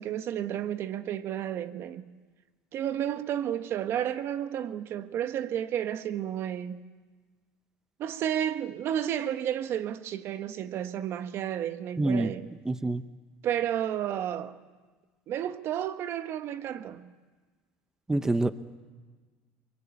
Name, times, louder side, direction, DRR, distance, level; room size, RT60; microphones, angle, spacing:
voice 1, 0.0-2.1 2.7-6.8 8.0-12.5 13.4-14.6 15.3-17.1, right 10 dB, 50° right, 1.3 m, -32 dB
voice 2, 12.0-12.3 12.7-13.0 18.1-18.5, right 2 dB, 10° right, 0.8 m, -26 dB
24.0 x 22.5 x 8.7 m
supercardioid pair, 120°, 5 cm